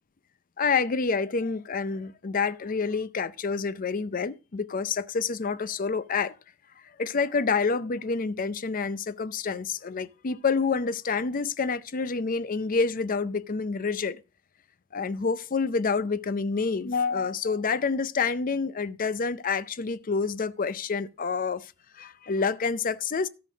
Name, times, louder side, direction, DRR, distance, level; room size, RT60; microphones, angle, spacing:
voice 1, 0.6-6.3 7.0-14.2 14.9-23.3, left 5 dB, 40° left, 0.5 m, -28 dB
13.5 x 5.9 x 5.0 m
head